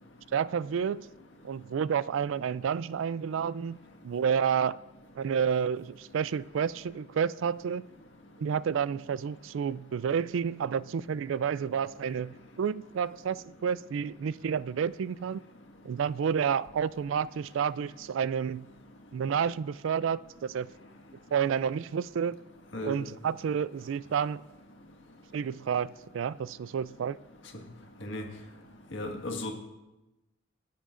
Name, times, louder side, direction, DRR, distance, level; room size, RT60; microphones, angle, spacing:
voice 1, 0.3-1.1 1.4-3.8 4.0-4.8 5.2-7.8 8.4-15.4 15.8-18.7 19.1-20.7 21.3-22.4 22.8-24.4 25.3-27.2, right 7 dB, 70° right, 0.3 m, -30 dB
voice 2, 22.7-23.1 28.0-28.3 28.9-29.5, left 1 dB, 65° left, 1.7 m, -35 dB
26.5 x 10.5 x 2.5 m
head